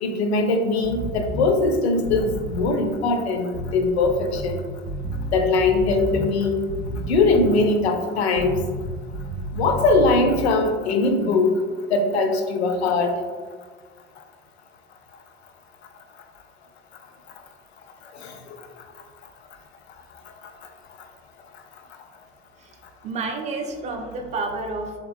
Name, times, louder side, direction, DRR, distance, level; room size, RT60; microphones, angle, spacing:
voice 1, 0.0-4.6 5.3-6.6 7.1-8.6 9.5-11.5 11.9-13.2 18.2-18.3, left 3 dB, 70° left, 5 dB, 0.5 m, -21 dB
sound 1, 0.8-1.5 2.0-2.7 3.5-4.5 4.9-6.3 6.7-7.6 8.4-10.4, right 1 dB, 75° right, 0.6 m, -31 dB
voice 2, 23.0-25.0, right 3 dB, 20° right, 4 dB, 0.4 m, -30 dB
3.3 x 2.9 x 2.4 m, 1.5 s
figure-of-eight pair, 60°, 34 cm